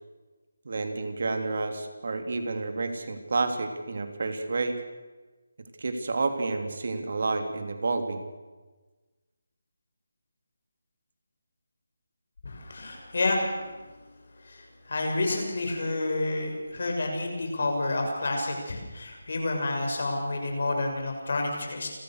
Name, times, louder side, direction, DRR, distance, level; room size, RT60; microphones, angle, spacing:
voice 1, 0.6-4.8 5.8-8.3, right 3 dB, 55° right, 6 dB, 3.1 m, -30 dB
voice 2, 12.4-13.8 14.4-21.9, left 2 dB, 60° left, 3 dB, 6.8 m, -29 dB
30.0 x 14.5 x 6.6 m, 1.2 s
figure-of-eight pair, 165°, 0 cm